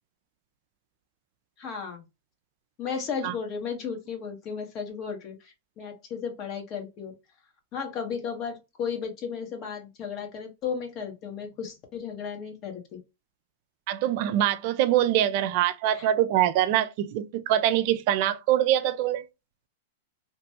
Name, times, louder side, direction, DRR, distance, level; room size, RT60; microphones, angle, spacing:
voice 1, 1.6-2.0 2.8-7.1 7.7-13.0 15.9-16.1, left 6 dB, 35° left, 1.1 m, -34 dB
voice 2, 13.9-19.2, right 12 dB, 50° right, 0.4 m, -24 dB
2.9 x 2.2 x 2.8 m
hypercardioid pair, 130°, 0 cm